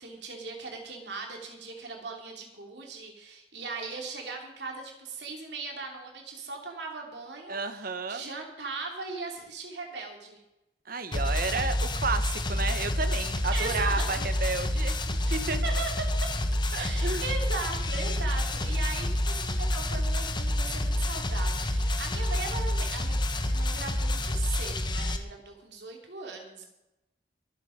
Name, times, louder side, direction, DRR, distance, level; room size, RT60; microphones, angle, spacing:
voice 1, 0.0-10.4 13.5-14.0 15.2-16.3 16.8-23.2 23.5-26.6, right 4 dB, 70° right, 1 dB, 3.1 m, -38 dB
voice 2, 7.5-8.2 10.9-15.6 16.7-17.2, right 4 dB, 55° right, 10 dB, 1.3 m, -32 dB
sound 1, 11.1-25.2, left 1 dB, 25° left, 1.2 m, -28 dB
23.0 x 7.9 x 5.2 m, 0.92 s
head